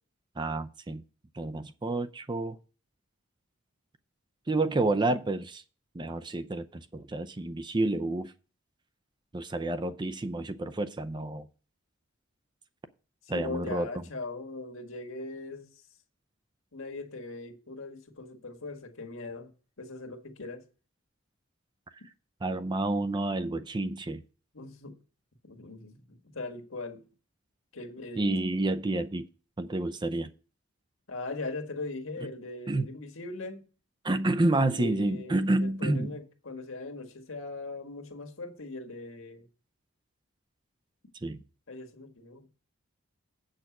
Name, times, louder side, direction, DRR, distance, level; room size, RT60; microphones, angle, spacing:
voice 1, 0.4-1.0 1.3-2.6 4.5-5.6 5.9-8.3 9.3-11.5 13.3-14.0 22.4-24.2 28.2-29.3 29.6-30.3 32.7-32.9 34.0-36.2 41.1-41.4, right 2 dB, 20° right, 0.5 m, -29 dB
voice 2, 13.2-15.8 16.7-19.5 19.8-20.6 24.5-25.0 25.4-27.0 27.7-28.3 31.1-33.7 34.6-35.4 35.6-39.5 41.7-42.5, left 2 dB, 75° left, 1.7 m, -40 dB
8.2 x 6.5 x 5.9 m
head